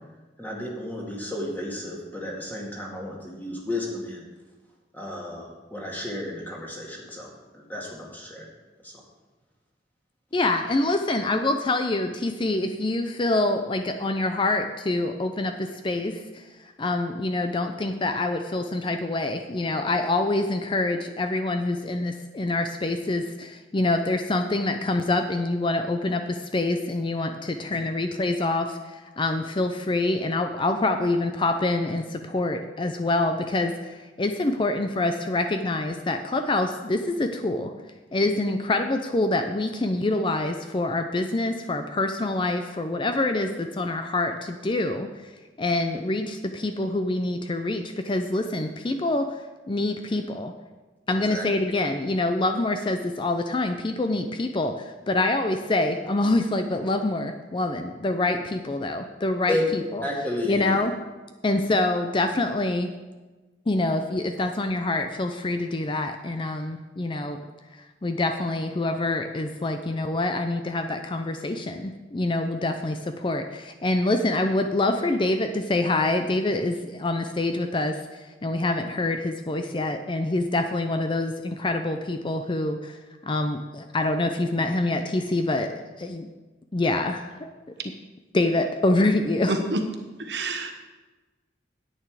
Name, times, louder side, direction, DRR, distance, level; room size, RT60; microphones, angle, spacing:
voice 1, 0.4-4.2 4.9-8.5 8.8-8.9 51.2-51.5 59.5-59.6 60.0-60.8, left 1 dB, 10° left, -2 dB, 2.0 m, -32 dB
voice 2, 10.3-37.7 38.1-45.3 45.6-50.5 51.1-60.1 60.4-60.9 61.4-62.9 63.7-67.4 67.7-86.3 86.7-87.4 88.3-89.6, left 2 dB, 30° left, 7 dB, 0.5 m, -26 dB
voice 3, 89.5-89.8 90.2-90.7, right 1 dB, 70° right, 5 dB, 1.2 m, -27 dB
9.9 x 9.0 x 4.8 m, 1.2 s
head